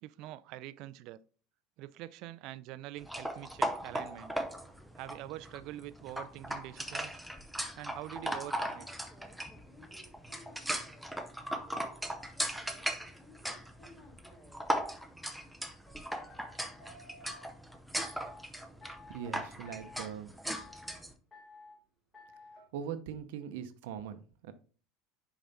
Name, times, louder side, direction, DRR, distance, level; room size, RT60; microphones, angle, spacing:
voice 1, 0.0-1.2 1.8-4.4 5.0-7.2 7.8-8.9, right 14 dB, 50° right, 0.4 m, -45 dB
sound 1, 3.0-21.1, equal, ahead, 0.6 m, -38 dB
sound 2, 8.2-11.1 11.7-14.6 15.9-17.5 18.0-18.4 18.8-19.3 19.6-20.1 20.5-21.0 21.3-21.8 22.1-22.7, left 2 dB, 20° left, 2.7 m, -56 dB
voice 2, 19.1-20.4 22.7-24.5, right 8 dB, 80° right, 0.7 m, -41 dB
6.8 x 4.9 x 4.1 m
cardioid pair, 160°, 0 cm